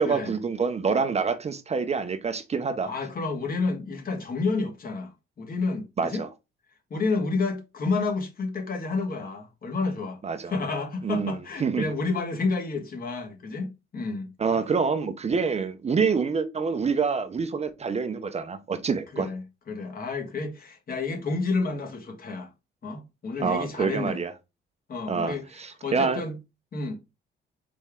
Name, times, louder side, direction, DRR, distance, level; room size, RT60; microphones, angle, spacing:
voice 1, 0.0-2.9 6.0-6.3 10.2-10.5 11.0-11.8 14.4-19.3 23.4-24.3 25.1-26.2, right 5 dB, 35° right, 0.6 m, -26 dB
voice 2, 2.8-6.2 6.9-14.3 19.1-22.5 22.8-24.2 24.9-25.5 25.8-26.4 26.7-27.0, left 3 dB, 45° left, 1.4 m, -30 dB
4.3 x 3.5 x 3.5 m
cardioid pair, 90°, 20 cm